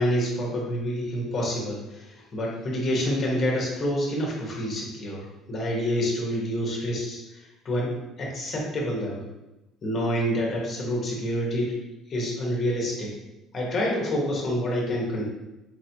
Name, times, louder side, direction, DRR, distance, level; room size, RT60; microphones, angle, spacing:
voice 1, 0.0-9.3 9.8-11.8 12.1-13.1 13.5-15.3, equal, 30° left, -2 dB, 1.1 m, -28 dB
4.5 x 3.0 x 2.8 m, 0.98 s
cardioid pair, 155°, 0 cm